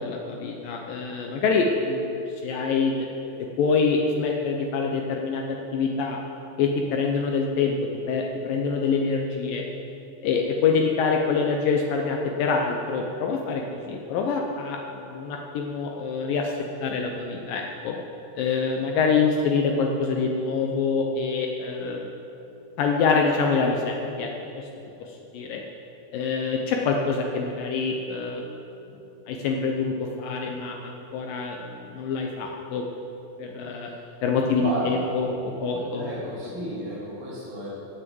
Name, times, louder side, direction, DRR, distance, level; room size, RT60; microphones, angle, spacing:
voice 1, 0.0-3.0 3.6-5.4 5.7-6.2 6.6-7.7 8.1-9.6 10.2-16.5 16.8-18.0 18.4-22.1 22.8-24.3 24.6-24.7 25.3-25.6 26.1-28.4 29.3-32.8 33.4-33.9 34.2-36.1, left 5 dB, 90° left, 1 dB, 1.9 m, -25 dB
voice 2, 34.6-35.1 35.9-37.7, right 1 dB, 85° right, -7 dB, 6.1 m, -32 dB
16.5 x 6.4 x 7.8 m, 2.9 s
omnidirectional pair, 5.1 m